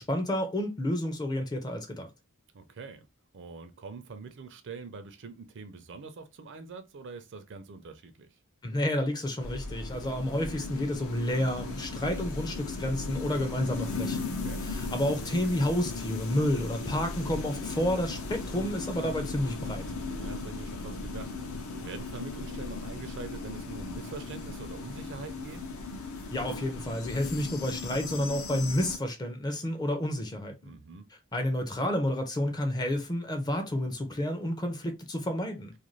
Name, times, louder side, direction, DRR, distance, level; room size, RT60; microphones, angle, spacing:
voice 1, 0.0-2.1 8.6-14.3 14.6-19.9 26.3-30.7 31.3-35.7, left 1 dB, 20° left, 0.4 m, -30 dB
voice 2, 2.5-3.1 3.3-8.4 14.3-14.6 19.9-21.3 21.8-25.6 30.6-31.1, right 4 dB, 55° right, 0.4 m, -44 dB
sound 1, 9.4-29.0, left 3 dB, 65° left, 0.5 m, -37 dB
2.5 x 2.2 x 3.0 m
head